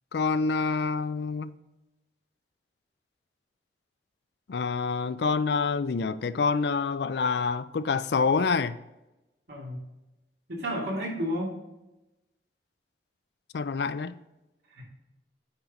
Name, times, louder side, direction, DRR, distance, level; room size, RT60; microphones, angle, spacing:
voice 1, 0.1-1.5 4.5-8.8 13.5-14.1, left 4 dB, 75° left, 0.4 m, -27 dB
voice 2, 9.5-9.8 10.5-11.5 14.7-14.8, equal, 80° right, 2.8 m, -31 dB
8.7 x 5.6 x 3.8 m
head